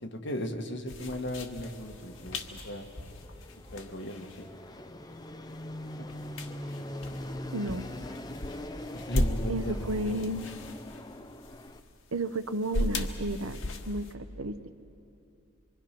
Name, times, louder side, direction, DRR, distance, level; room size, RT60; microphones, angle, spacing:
voice 1, 0.0-2.9 3.5-4.5 6.0-6.1 8.9-10.4, left 1 dB, 55° left, 3 dB, 1.6 m, -37 dB
sound 1, 0.9-14.1, left 1 dB, 75° left, 1.4 m, -37 dB
Fixed-wing aircraft airplane, 1.6-11.8, left 1 dB, 20° left, 0.6 m, -43 dB
voice 2, 7.5-7.9 9.5-10.5 12.1-13.6 13.9-14.7, right 1 dB, 90° right, 10 dB, 0.9 m, -32 dB
25.5 x 24.0 x 6.0 m, 2.7 s
head